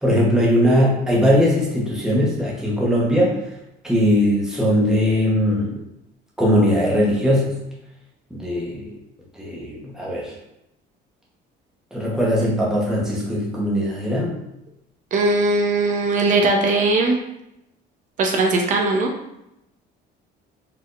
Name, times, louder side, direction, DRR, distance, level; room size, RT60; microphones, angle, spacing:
voice 1, 0.0-3.4 3.8-5.8 6.4-7.6 8.3-8.9 9.4-10.3 11.9-14.4, equal, 5° right, -5 dB, 1.0 m, -20 dB
voice 2, 15.1-17.2 18.2-19.1, right 2 dB, 45° right, 1 dB, 0.7 m, -19 dB
4.5 x 3.5 x 2.5 m, 0.85 s
cardioid pair, 155°, 18 cm